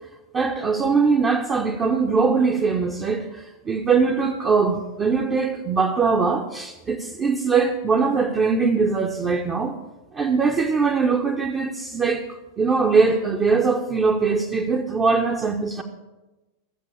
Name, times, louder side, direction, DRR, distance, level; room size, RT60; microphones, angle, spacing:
voice 1, 0.3-9.7 10.1-15.8, right 4 dB, 25° right, 0.8 m, -21 dB
14.0 x 7.6 x 7.1 m
figure-of-eight pair, 90°, 0 cm